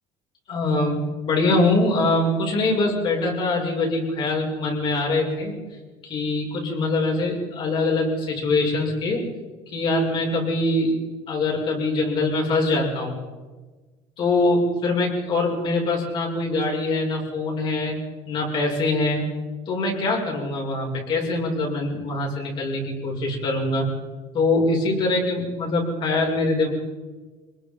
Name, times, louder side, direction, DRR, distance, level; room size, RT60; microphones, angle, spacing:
voice 1, 0.5-5.6 6.0-9.3 9.7-11.0 11.3-13.1 14.2-17.9 18.2-19.3 19.6-23.9 24.3-26.7, left 2 dB, 45° left, -1 dB, 6.8 m, -23 dB
25.5 x 21.5 x 5.5 m, 1.3 s
cardioid pair, 160°, 12 cm